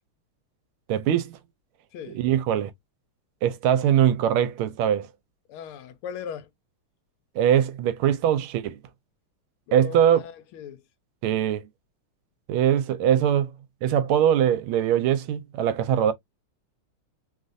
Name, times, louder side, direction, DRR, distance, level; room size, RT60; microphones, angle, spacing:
voice 1, 0.9-1.4 2.1-2.7 3.4-5.1 7.3-8.8 9.7-10.2 11.2-11.7 12.5-13.5 13.8-16.1, right 10 dB, 80° right, 1.4 m, -22 dB
voice 2, 5.5-6.5 9.7-10.8, left 8 dB, 80° left, 1.5 m, -38 dB
3.5 x 2.4 x 2.5 m
omnidirectional pair, 2.4 m